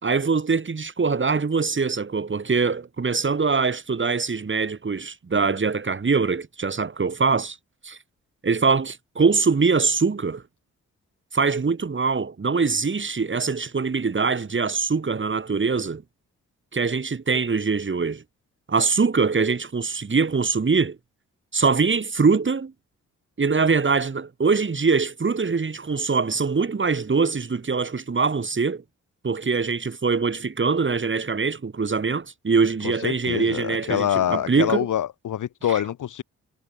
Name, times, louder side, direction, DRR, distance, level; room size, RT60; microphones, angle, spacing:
voice 1, 0.0-7.6 7.8-8.0 8.4-10.4 11.3-16.0 16.7-18.2 18.7-21.0 21.5-22.7 23.4-28.8 29.2-34.9, right 4 dB, 40° right, 4.2 m, -23 dB
voice 2, 32.8-36.2, left 10 dB, 75° left, 3.0 m, -25 dB
cardioid pair, 60°, 31 cm